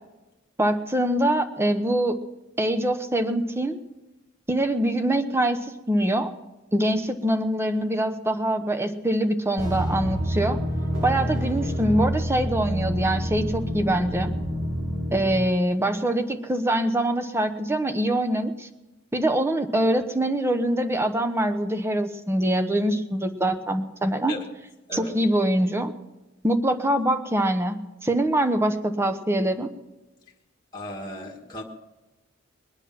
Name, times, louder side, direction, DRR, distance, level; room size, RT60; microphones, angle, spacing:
voice 1, 0.6-2.2 2.6-3.8 4.5-6.3 6.7-10.6 11.0-14.3 15.1-18.7 19.1-24.3 24.9-25.9 26.4-29.7, right 1 dB, 15° right, 7 dB, 1.0 m, -24 dB
sound 1, 9.6-15.4, equal, 70° right, 2.6 m, -28 dB
voice 2, 30.7-31.6, left 2 dB, 20° left, -1 dB, 1.6 m, -36 dB
21.5 x 9.9 x 5.9 m, 1.1 s
head